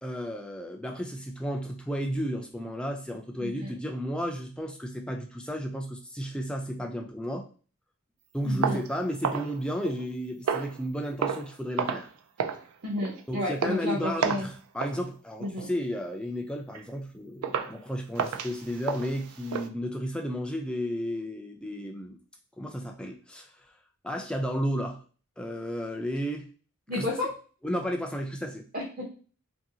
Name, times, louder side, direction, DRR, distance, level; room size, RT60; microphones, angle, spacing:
voice 1, 0.0-7.5 8.3-12.1 13.3-22.2 22.6-23.5 24.0-25.0 25.4-26.5 26.9-27.1 27.6-28.7, equal, 5° left, 3 dB, 0.3 m, -33 dB
voice 2, 3.4-3.7 8.4-8.8 12.8-14.5 15.4-15.7 26.9-27.3 28.7-29.1, left 1 dB, 35° right, -3 dB, 0.7 m, -32 dB
sound 1, 8.6-10.1 10.5-10.8 11.2-11.5 11.8-12.1 12.4-12.6 13.0-13.2 13.6-13.8 14.2-14.5 14.8-15.0 15.4-15.7 16.1-16.2 16.7-16.8 17.4-17.8 18.2-19.7, right 6 dB, 85° right, 0.4 m, -31 dB
2.9 x 2.7 x 2.7 m, 0.38 s
head